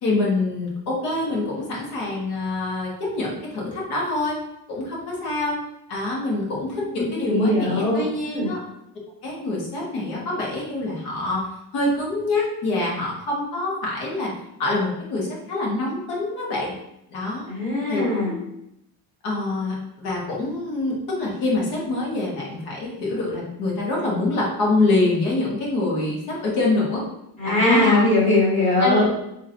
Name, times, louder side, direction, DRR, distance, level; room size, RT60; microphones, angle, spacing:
voice 1, 0.0-4.4 4.7-5.6 5.9-8.6 9.2-11.5 11.7-14.3 14.6-16.7 17.1-17.5 17.9-18.4 19.2-27.0 27.4-28.0 28.8-29.1, left 2 dB, 75° left, -3 dB, 1.4 m, -25 dB
voice 2, 6.9-8.5 17.5-18.3 27.4-29.1, left 2 dB, 20° left, -6 dB, 1.2 m, -21 dB
4.2 x 3.0 x 2.7 m, 0.80 s
cardioid pair, 175°, 39 cm